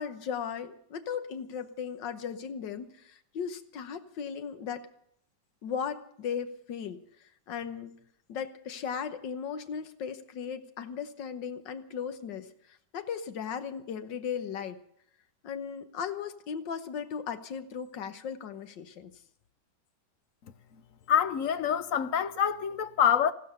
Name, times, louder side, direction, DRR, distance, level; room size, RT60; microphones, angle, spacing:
voice 1, 0.0-4.8 5.6-7.0 7.5-7.9 8.3-14.8 15.4-19.1, left 7 dB, 85° left, 1.8 m, -37 dB
voice 2, 21.1-23.3, left 8 dB, 55° left, 1.1 m, -26 dB
15.0 x 13.0 x 6.8 m
omnidirectional pair, 1.9 m